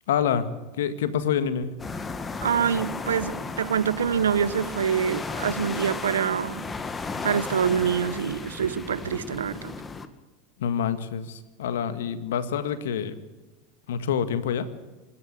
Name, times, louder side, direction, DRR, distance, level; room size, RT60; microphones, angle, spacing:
voice 1, 0.1-0.5 0.8-1.8 10.6-13.2 13.9-14.7, left 8 dB, 75° left, 11 dB, 1.8 m, -27 dB
sound 1, 1.8-10.1, left 4 dB, 20° left, 1.9 m, -34 dB
voice 2, 2.4-6.6 7.2-9.7, right 8 dB, 85° right, 17 dB, 0.9 m, -25 dB
26.0 x 12.5 x 8.7 m, 1.2 s
hypercardioid pair, 85°, 0 cm